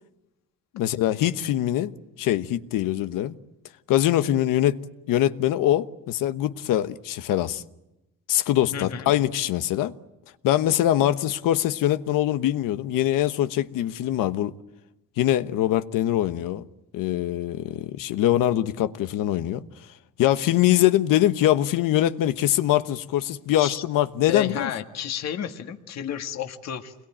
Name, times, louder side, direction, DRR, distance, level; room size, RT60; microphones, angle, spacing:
voice 1, 0.7-3.3 3.9-4.8 5.1-7.6 8.3-9.9 10.4-14.5 15.2-16.6 16.9-19.6 20.2-24.7, left 13 dB, 80° left, 1.2 m, -23 dB
voice 2, 8.7-9.1 23.6-23.8 24.3-26.9, left 9 dB, 55° left, 1.9 m, -32 dB
28.5 x 22.0 x 9.0 m
cardioid pair, 135°, 32 cm